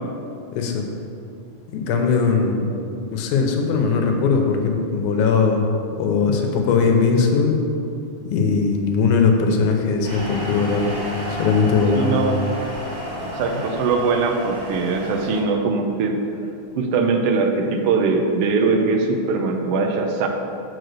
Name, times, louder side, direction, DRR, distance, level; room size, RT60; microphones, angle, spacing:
voice 1, 0.5-0.8 1.7-2.7 3.1-5.7 6.0-7.6 8.3-10.9 11.3-12.1, left 5 dB, 80° left, 3 dB, 2.3 m, -19 dB
sound 1, 10.0-15.4, equal, 40° right, 2.5 m, -31 dB
voice 2, 11.9-12.4 13.2-16.2 16.8-20.3, right 4 dB, 80° right, 3 dB, 1.3 m, -21 dB
7.9 x 4.8 x 6.5 m, 2.6 s
omnidirectional pair, 3.5 m